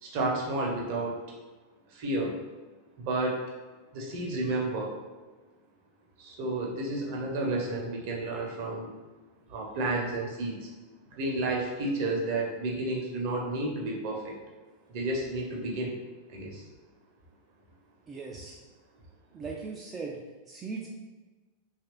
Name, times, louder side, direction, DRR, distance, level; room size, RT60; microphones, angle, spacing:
voice 1, 0.0-1.2 1.9-2.4 3.0-3.4 3.9-5.0 6.2-8.9 9.5-10.7 11.1-14.4 14.9-15.9 16.3-16.6, right 2 dB, 45° right, -1 dB, 0.7 m, -31 dB
voice 2, 18.1-18.6 19.3-20.9, right 4 dB, 20° right, -2 dB, 0.3 m, -39 dB
2.9 x 2.4 x 3.0 m, 1.3 s
figure-of-eight pair, 90°, 0 cm